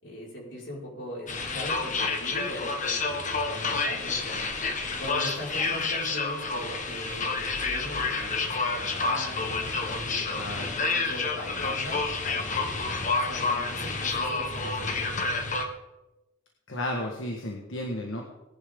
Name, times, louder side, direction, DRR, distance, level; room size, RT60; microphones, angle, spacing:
voice 1, 0.0-4.4 5.0-12.7 13.2-15.3, equal, 65° left, -4 dB, 5.7 m, -40 dB
sound 1, 1.3-15.6, left 3 dB, 40° left, 1.5 m, -29 dB
voice 2, 10.4-10.7 16.7-18.2, left 1 dB, 80° left, 0 dB, 1.8 m, -33 dB
19.5 x 11.0 x 3.9 m, 1.0 s
head